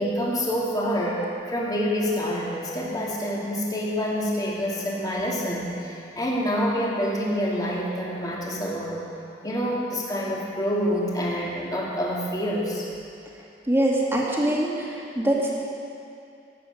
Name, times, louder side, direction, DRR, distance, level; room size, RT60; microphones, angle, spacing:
voice 1, 0.0-9.0 9.4-12.9, equal, 20° left, -5 dB, 2.7 m, -27 dB
voice 2, 13.7-15.5, right 1 dB, 15° right, -4 dB, 2.4 m, -23 dB
17.5 x 8.3 x 8.0 m, 2.6 s
head